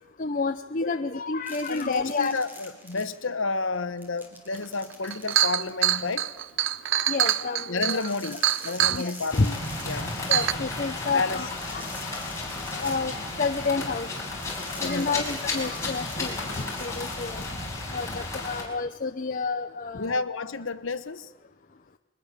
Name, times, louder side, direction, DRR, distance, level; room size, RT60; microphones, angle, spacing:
voice 1, 0.2-2.3 6.9-9.5 10.3-11.9 12.7-14.1 14.4-14.5 14.8-17.4 17.9-20.2, left 4 dB, 40° left, 6 dB, 0.7 m, -30 dB
sound 1, 1.4-3.4 3.7-6.6 7.7-10.7 11.4-13.8 14.4-17.5, equal, 10° right, 3.2 m, -46 dB
voice 2, 1.7-6.3 7.7-10.1 11.1-11.4 14.8-15.6 19.9-21.3, left 3 dB, 75° left, 11 dB, 1.1 m, -31 dB
Chink clink, 4.6-4.7 5.0-9.0 9.8-9.9 10.3-10.5, right 12 dB, 65° right, 0.6 m, -24 dB
sound 2, 9.3-18.6, left 2 dB, 15° left, 5.2 m, -33 dB
22.5 x 19.5 x 6.8 m, 1.1 s
head